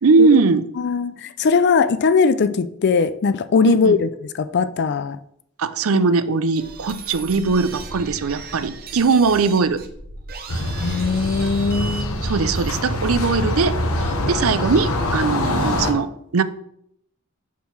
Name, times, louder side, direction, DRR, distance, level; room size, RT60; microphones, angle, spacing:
voice 1, 0.0-0.6 3.6-4.0 5.6-9.8 12.2-13.8 14.3-16.4, right 4 dB, 70° right, 13 dB, 0.5 m, -19 dB
voice 2, 0.8-4.1 4.4-5.2 10.8-12.2, left 5 dB, 55° left, 12 dB, 0.4 m, -19 dB
sound 1, 6.6-13.4, right 3 dB, 45° right, 1.0 m, -36 dB
sound 2, 10.5-15.9, left 1 dB, 75° left, 1.2 m, -24 dB
5.5 x 4.6 x 6.1 m, 0.72 s
head